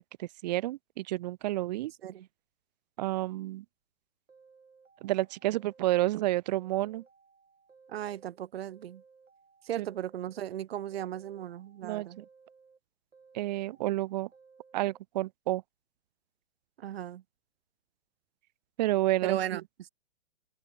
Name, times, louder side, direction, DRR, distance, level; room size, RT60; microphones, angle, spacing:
voice 1, 0.0-1.9 3.0-3.6 5.0-7.0 9.8-9.9 11.8-12.2 13.3-14.3 14.7-15.6 18.8-19.6, right 16 dB, 35° right, 0.8 m, -30 dB
sound 1, 4.3-6.2 6.5-8.4 8.7-10.6 10.9-12.8 13.1-15.0, right 5 dB, 85° right, 4.2 m, -60 dB
voice 2, 7.9-9.0 9.7-12.2 16.8-17.2 19.2-19.9, right 11 dB, 55° right, 1.0 m, -36 dB
open air
hypercardioid pair, 125°, 37 cm